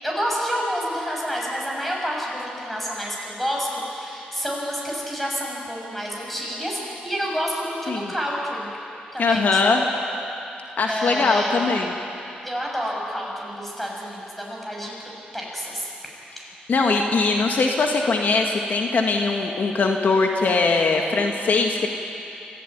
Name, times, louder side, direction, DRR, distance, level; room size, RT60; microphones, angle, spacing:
voice 1, 0.0-8.7 9.1-9.9 10.9-11.6 12.4-14.9 15.3-15.9 16.4-16.5, equal, 5° left, -2 dB, 6.8 m, -29 dB
voice 2, 9.2-9.8 10.8-11.9 16.7-21.9, left 3 dB, 60° left, 2 dB, 1.7 m, -21 dB
25.0 x 15.5 x 9.4 m, 2.8 s
cardioid pair, 90°, 3 cm